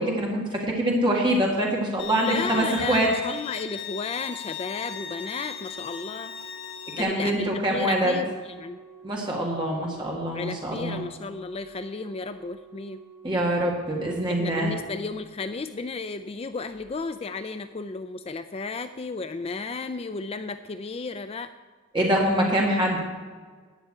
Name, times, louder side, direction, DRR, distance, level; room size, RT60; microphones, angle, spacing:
voice 1, 0.0-3.1 7.0-8.1 9.0-11.0 13.2-14.7 21.9-23.0, right 1 dB, 20° right, -2 dB, 1.7 m, -24 dB
Bowed string instrument, 2.0-7.0, left 8 dB, 55° left, 1.8 m, -38 dB
voice 2, 2.2-6.3 7.0-8.8 10.3-13.0 14.3-21.5, left 4 dB, 30° left, 10 dB, 0.4 m, -33 dB
Organ, 4.7-15.6 16.7-16.9, right 6 dB, 55° right, 4.3 m, -50 dB
11.5 x 5.5 x 8.9 m, 1.5 s
head